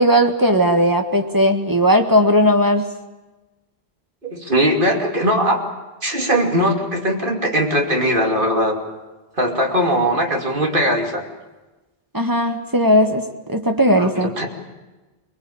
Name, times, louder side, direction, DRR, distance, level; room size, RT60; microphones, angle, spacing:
voice 1, 0.0-2.9 12.1-14.3, equal, 20° right, 4 dB, 1.6 m, -17 dB
voice 2, 4.2-5.6 6.0-8.8 9.4-11.2 13.9-14.5, equal, 55° right, 2 dB, 3.1 m, -20 dB
24.5 x 21.0 x 8.7 m, 1.1 s
omnidirectional pair, 1.0 m